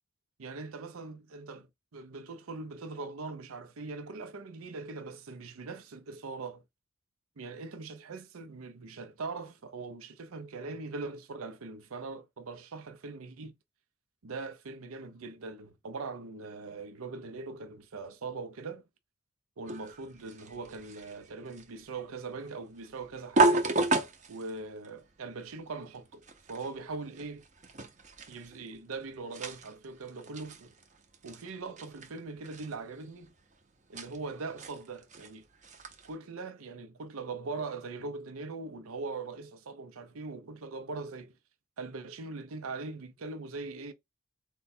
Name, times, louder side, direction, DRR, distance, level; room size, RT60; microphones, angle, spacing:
voice 1, 0.4-1.7 1.9-6.6 7.4-13.5 14.2-18.8 19.6-23.7 24.3-27.4 28.3-30.7 31.2-33.3 33.9-35.4 36.0-41.3 41.8-43.9, right 3 dB, 80° right, 0.6 m, -41 dB
sound 1, 19.7-36.2, right 2 dB, 35° right, 0.7 m, -34 dB
4.4 x 2.3 x 4.1 m
head